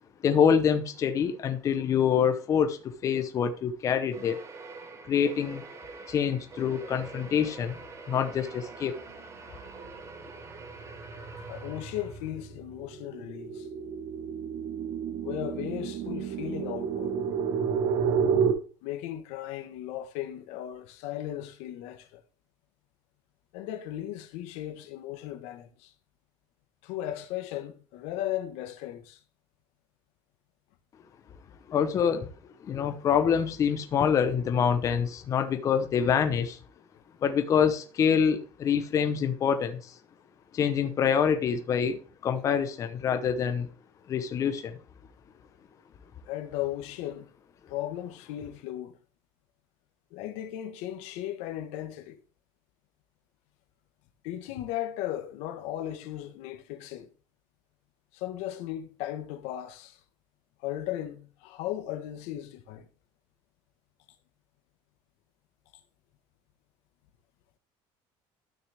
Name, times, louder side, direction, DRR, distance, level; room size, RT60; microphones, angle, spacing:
voice 1, 0.2-4.4 5.1-5.6 6.1-7.8 8.1-8.9 31.7-32.3 32.6-36.6 37.2-39.9 40.5-43.7 44.1-44.8, left 7 dB, 30° left, 0.9 m, -26 dB
sound 1, 4.1-12.4, right 4 dB, 25° right, 1.4 m, -45 dB
sound 2, 8.8-9.2 9.6-18.5, right 7 dB, 50° right, 1.4 m, -31 dB
voice 2, 11.3-13.7 15.2-17.2 18.8-22.2 23.5-25.9 26.8-29.2 46.3-47.3 47.7-49.0 50.1-52.2 54.2-57.1 58.1-60.0 60.6-62.9, left 12 dB, 75° left, 1.4 m, -36 dB
12.5 x 6.4 x 3.5 m
cardioid pair, 170°, 11 cm